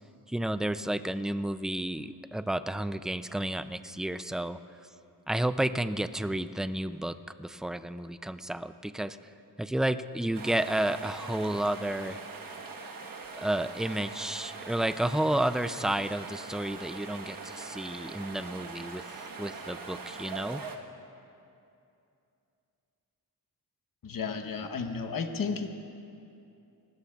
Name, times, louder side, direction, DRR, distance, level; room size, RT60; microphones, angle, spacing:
voice 1, 0.3-4.6 5.3-9.2 9.6-12.2 13.3-19.0 19.4-20.6, right 1 dB, ahead, 11 dB, 0.3 m, -31 dB
sound 1, 10.3-20.8, right 4 dB, 60° right, 1.3 m, -42 dB
voice 2, 24.0-25.7, left 5 dB, 60° left, 6 dB, 1.1 m, -33 dB
27.5 x 20.0 x 2.4 m, 2.6 s
wide cardioid pair, 115°, 38 cm